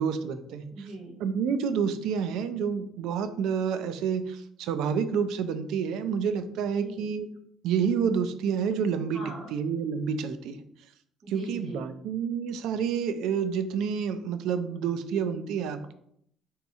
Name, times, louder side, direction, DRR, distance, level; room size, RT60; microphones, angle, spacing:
voice 1, 0.0-0.7 1.2-7.3 7.6-9.2 9.5-10.6 11.3-15.9, right 7 dB, 65° right, 11 dB, 0.3 m, -29 dB
voice 2, 0.7-1.2 6.7-7.1 9.1-9.5 11.2-11.9, right 1 dB, 35° right, -5 dB, 1.4 m, -41 dB
3.5 x 2.8 x 4.1 m, 0.70 s
cardioid pair, 175°, 0 cm